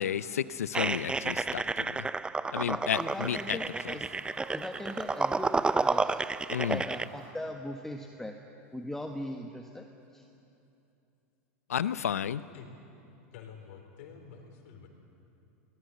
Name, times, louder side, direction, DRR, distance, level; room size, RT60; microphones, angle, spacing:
voice 1, 0.0-2.1 2.5-3.6 3.8-3.9 6.5-6.8 11.7-12.4, left 9 dB, 85° left, 16 dB, 0.7 m, -32 dB
sound 1, 0.7-7.1, right 3 dB, 10° right, 0.6 m, -31 dB
voice 2, 2.7-4.1 4.5-6.2 6.6-8.3 8.7-9.8 10.1-10.2, left 1 dB, 5° left, 3 dB, 1.4 m, -39 dB
sound 2, 2.9-7.3, right 3 dB, 35° right, 6.6 m, -52 dB
voice 3, 13.3-14.9, left 7 dB, 65° left, 4 dB, 4.0 m, -48 dB
22.5 x 18.5 x 8.0 m, 2.8 s
hypercardioid pair, 95°, 8 cm